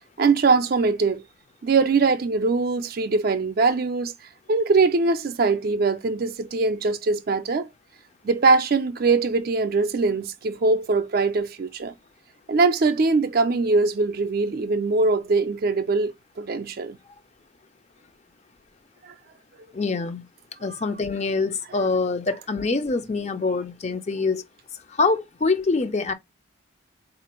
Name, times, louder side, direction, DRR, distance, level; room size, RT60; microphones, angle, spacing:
voice 1, 0.2-1.2 1.6-4.1 4.5-7.7 8.2-11.9 12.5-16.1 16.4-17.0 19.1-19.2, right 4 dB, 50° right, 0.4 m, -22 dB
voice 2, 19.7-20.3 20.6-24.4 24.9-26.1, left 3 dB, 35° left, 0.5 m, -25 dB
4.0 x 2.5 x 2.9 m
head